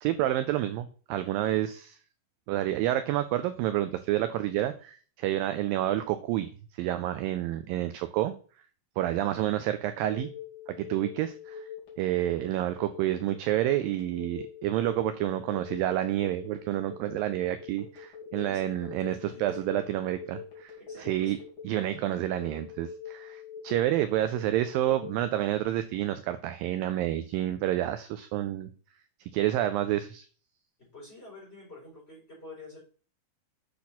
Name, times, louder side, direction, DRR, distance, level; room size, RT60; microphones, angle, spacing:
voice 1, 0.0-2.0 2.5-8.3 9.0-10.3 10.7-11.7 12.0-20.7 21.0-21.4 21.6-28.7 29.3-30.3, right 13 dB, 85° right, 11 dB, 2.0 m, -29 dB
Telephone, 10.0-25.3, left 8 dB, 35° left, 2.5 m, -44 dB
voice 2, 18.4-19.9 20.8-21.4 30.8-32.8, left 2 dB, 15° left, -3 dB, 4.7 m, -49 dB
8.5 x 5.8 x 4.2 m, 0.40 s
omnidirectional pair, 4.6 m